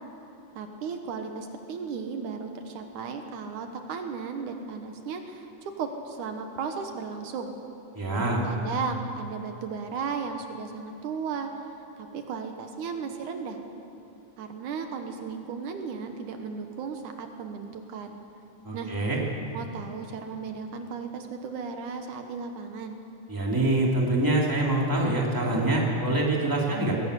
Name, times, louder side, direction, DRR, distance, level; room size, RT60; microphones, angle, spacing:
voice 1, 0.6-7.6 8.4-11.5 12.0-13.6 14.4-18.2 18.7-18.9 19.5-23.0, right 5 dB, 75° right, 5 dB, 2.6 m, -35 dB
voice 2, 7.9-8.4 18.6-19.2 23.3-26.9, right 2 dB, 5° right, -3 dB, 2.6 m, -25 dB
20.5 x 17.0 x 8.2 m, 2.9 s
omnidirectional pair, 3.6 m